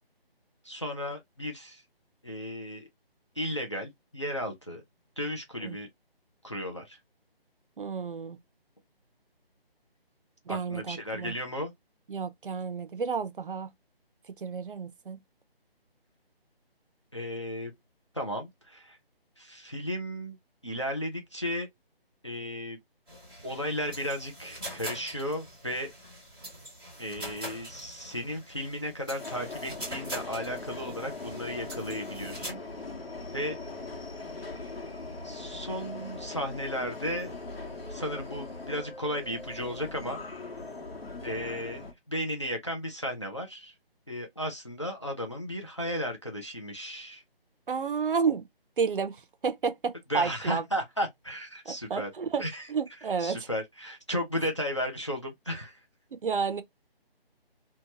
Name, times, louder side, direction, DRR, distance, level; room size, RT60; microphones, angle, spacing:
voice 1, 0.6-1.8 2.2-2.9 3.4-4.8 5.2-5.9 6.4-7.0 10.5-11.7 17.1-17.7 18.1-19.0 19.4-20.4 20.6-21.7 22.2-22.8 23.4-25.9 27.0-32.6 33.3-33.6 35.2-37.3 37.9-40.2 41.2-43.7 44.1-47.2 50.1-52.1 52.4-52.7 53.2-55.8, equal, 30° left, 0.4 m, -34 dB
voice 2, 7.8-8.4 10.5-11.3 12.1-13.7 14.4-15.2 47.7-48.5 48.8-50.7 51.7-52.4 52.7-53.5 56.2-56.6, right 5 dB, 60° right, 0.5 m, -31 dB
sound 1, 23.1-32.5, equal, ahead, 0.8 m, -43 dB
Subway metro underground, 29.2-41.9, left 3 dB, 75° left, 1.1 m, -40 dB
2.8 x 2.2 x 2.7 m
figure-of-eight pair, 170°, 30 cm